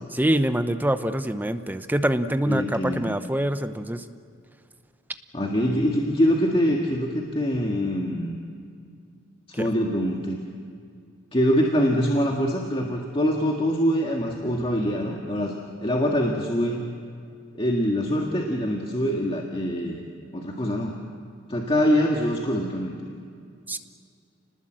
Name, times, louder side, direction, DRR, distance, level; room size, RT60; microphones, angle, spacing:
voice 1, 0.1-4.0 9.5-9.7 23.7-23.8, right 1 dB, 10° right, 9 dB, 0.8 m, -25 dB
voice 2, 2.5-3.2 5.3-8.4 9.5-10.4 11.3-15.5 15.8-16.8 17.5-20.1 20.3-20.9 21.5-23.0, equal, 25° left, 0 dB, 1.9 m, -24 dB
29.5 x 20.0 x 7.7 m, 2.3 s
head